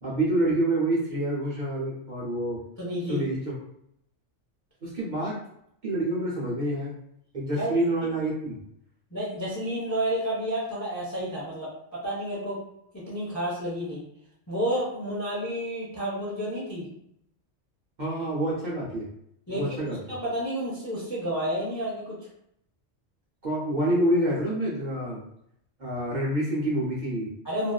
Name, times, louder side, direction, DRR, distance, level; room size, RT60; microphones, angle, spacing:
voice 1, 0.0-2.6 3.1-3.5 4.8-5.4 5.8-6.9 7.3-8.6 18.0-19.1 19.5-20.0 23.4-25.2 25.8-27.3, right 1 dB, 45° right, -6 dB, 0.7 m, -27 dB
voice 2, 2.8-3.2 7.6-7.8 9.1-12.6 12.9-14.0 14.5-16.9 19.5-22.2 27.4-27.7, equal, 25° left, -7 dB, 0.4 m, -30 dB
2.5 x 2.3 x 2.2 m, 0.73 s
omnidirectional pair, 1.2 m